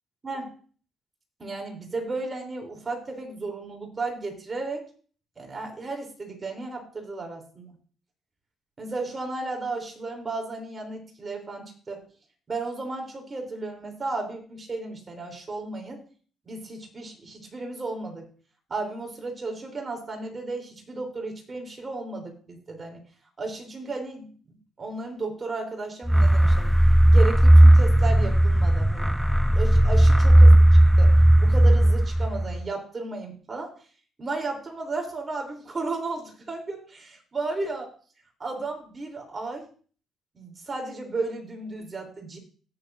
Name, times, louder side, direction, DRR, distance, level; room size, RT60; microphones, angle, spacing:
voice 1, 1.4-4.8 5.4-7.7 8.8-12.0 12.5-16.0 16.4-18.3 18.7-23.0 23.4-26.7 27.1-29.2 29.5-30.6 31.0-33.7 34.2-37.9 38.4-39.6 40.3-42.4, right 3 dB, 30° right, 3 dB, 3.3 m, -34 dB
sound 1, 26.1-32.6, right 1 dB, ahead, 0.3 m, -16 dB
17.0 x 7.2 x 2.6 m, 0.41 s
cardioid pair, 90°, 0 cm